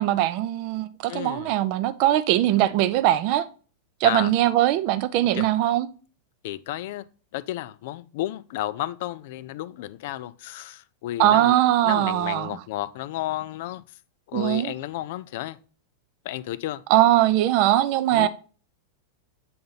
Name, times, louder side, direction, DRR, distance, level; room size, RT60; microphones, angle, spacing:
voice 1, 0.0-3.5 4.0-5.9 11.2-12.6 14.3-14.7 16.9-18.3, right 13 dB, 45° right, 0.5 m, -21 dB
voice 2, 1.1-1.5 4.0-4.3 5.3-5.5 6.4-7.1 7.3-11.6 11.8-13.8 14.3-15.6 16.2-16.8 18.1-18.3, left 14 dB, 50° left, 0.3 m, -32 dB
7.6 x 3.8 x 3.9 m
figure-of-eight pair, 90°, 0 cm